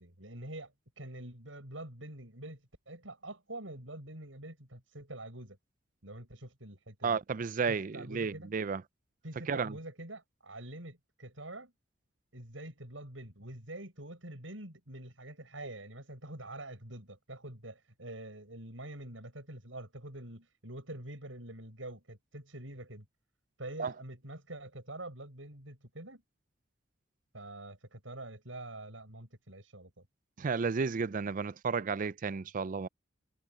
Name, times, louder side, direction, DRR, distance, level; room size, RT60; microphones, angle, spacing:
voice 1, 0.0-5.6 6.0-7.2 7.7-8.5 9.2-11.7 12.3-23.0 23.6-26.2 27.3-30.0, right 1 dB, 85° right, 7.9 m, -46 dB
voice 2, 7.0-8.8 9.5-9.8 23.8-23.9 30.4-32.9, right 5 dB, 45° right, 0.4 m, -32 dB
head